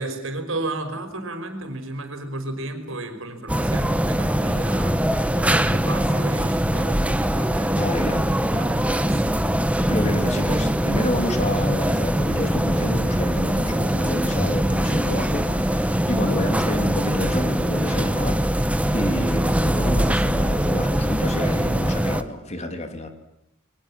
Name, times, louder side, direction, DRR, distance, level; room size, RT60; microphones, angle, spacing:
voice 1, 0.0-5.0 5.3-7.9 8.5-9.3, right 2 dB, 70° right, 6 dB, 5.2 m, -33 dB
sound 1, 3.5-22.2, equal, 5° right, 1.1 m, -22 dB
voice 2, 7.7-8.3 9.9-23.1, left 1 dB, 30° left, 5 dB, 2.8 m, -29 dB
28.0 x 23.0 x 7.6 m, 0.81 s
head